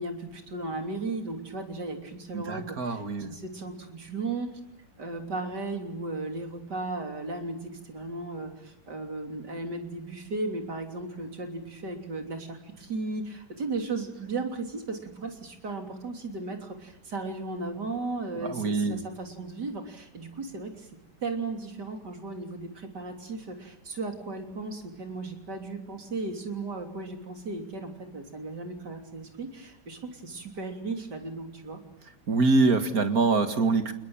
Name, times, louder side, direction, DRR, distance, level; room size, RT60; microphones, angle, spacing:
voice 1, 0.0-4.5 5.0-20.9 21.2-31.8, right 3 dB, 90° right, 4 dB, 4.0 m, -36 dB
voice 2, 2.3-3.4 18.4-19.0 32.3-33.9, right 3 dB, 60° right, 8 dB, 2.4 m, -24 dB
28.5 x 20.5 x 8.9 m, 0.92 s
omnidirectional pair, 1.8 m